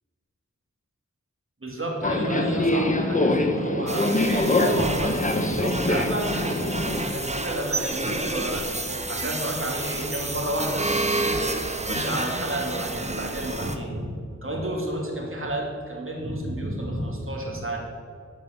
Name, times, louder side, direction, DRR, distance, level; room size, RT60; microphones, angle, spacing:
voice 1, 1.6-8.7 9.1-11.4 11.8-14.1 14.4-17.8, right 1 dB, 45° right, -1 dB, 2.6 m, -31 dB
Subway metro underground, 2.0-7.0, left 2 dB, 25° left, 1.0 m, -24 dB
sound 1, 3.9-13.8, right 2 dB, 20° right, 0.9 m, -30 dB
13.5 x 5.4 x 6.0 m, 2.3 s
wide cardioid pair, 50°, 30 cm